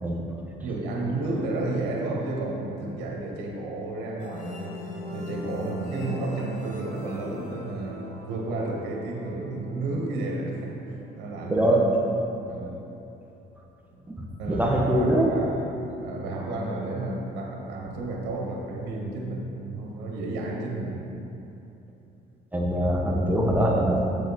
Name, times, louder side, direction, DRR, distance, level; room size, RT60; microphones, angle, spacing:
voice 1, 0.6-4.8 5.1-11.9 12.5-12.8 14.4-15.6 16.0-21.0, right 2 dB, 90° right, -1 dB, 1.2 m, -32 dB
sound 1, 4.2-11.6, left 1 dB, 50° left, 1.6 m, -41 dB
voice 2, 11.4-11.9 14.1-15.3 22.5-24.0, right 1 dB, 10° right, -2 dB, 0.8 m, -23 dB
7.5 x 5.1 x 4.1 m, 2.9 s
cardioid pair, 110°, 17 cm